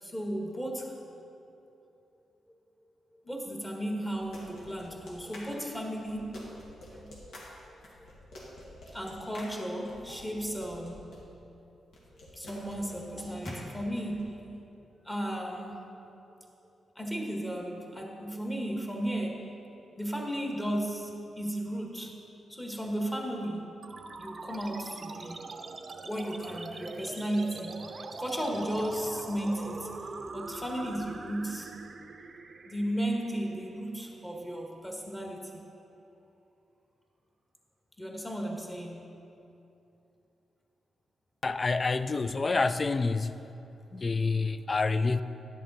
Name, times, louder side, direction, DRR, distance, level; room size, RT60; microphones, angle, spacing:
voice 1, 0.0-1.0 3.2-6.4 6.9-7.4 8.9-11.2 12.3-14.4 15.0-15.8 16.9-19.5 20.0-21.1 21.4-22.1 22.5-23.8 24.2-25.5 26.0-27.7 28.2-29.9 30.3-31.7 32.7-35.6 38.0-39.1, equal, 15° left, 0 dB, 1.5 m, -34 dB
sound 1, 4.1-11.2 11.9-14.2, left 1 dB, 85° left, 2.0 m, -48 dB
sound 2, 23.8-34.8, right 3 dB, 45° right, 0.6 m, -43 dB
voice 2, 41.4-43.4 43.9-45.2, left 3 dB, 35° left, 13 dB, 0.3 m, -28 dB
10.5 x 7.5 x 4.1 m, 2.8 s
cardioid pair, 80°, 0 cm